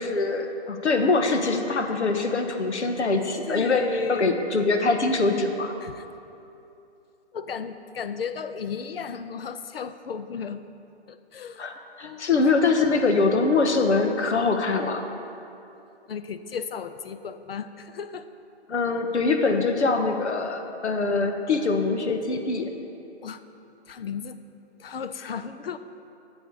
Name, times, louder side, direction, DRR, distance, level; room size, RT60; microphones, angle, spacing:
voice 1, 0.0-5.7 11.6-15.0 18.7-22.7, left 3 dB, 85° left, 5 dB, 1.3 m, -23 dB
voice 2, 3.5-4.4 5.8-6.1 7.3-10.6 11.1-11.7 12.0-12.3 16.1-18.3 23.2-23.4 23.9-24.4 24.8-25.8, left 6 dB, 60° left, 11 dB, 0.7 m, -34 dB
12.0 x 8.7 x 4.8 m, 2.7 s
hypercardioid pair, 165°, 33 cm